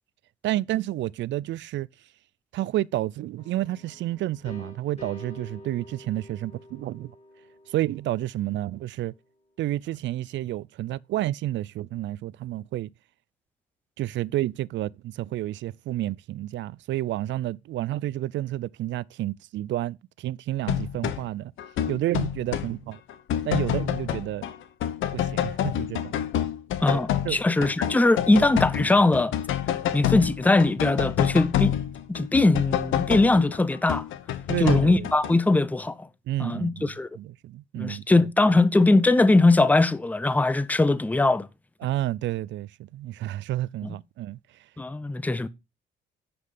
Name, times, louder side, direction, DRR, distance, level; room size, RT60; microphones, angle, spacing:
voice 1, 0.4-1.9 2.5-7.1 7.7-9.1 9.6-12.9 14.0-21.5 21.9-23.0 23.4-24.4 25.1-26.1 26.9-27.0 27.3-27.7 34.5-35.1 36.3-38.3 41.8-44.4, right 15 dB, 70° right, 0.4 m, -30 dB
sound 1, 3.4-9.1, left 1 dB, 30° left, 4.0 m, -47 dB
sound 2, 20.7-21.2 21.6-22.7 23.1-24.6 24.8-35.3, left 11 dB, 80° left, 1.0 m, -28 dB
voice 2, 26.8-29.3 29.9-31.7 32.1-34.0 34.6-36.0 36.4-37.1 37.8-41.5 43.8-43.9 44.8-45.5, left 2 dB, 10° left, 0.6 m, -21 dB
9.6 x 5.4 x 3.8 m
cardioid pair, 90°, 20 cm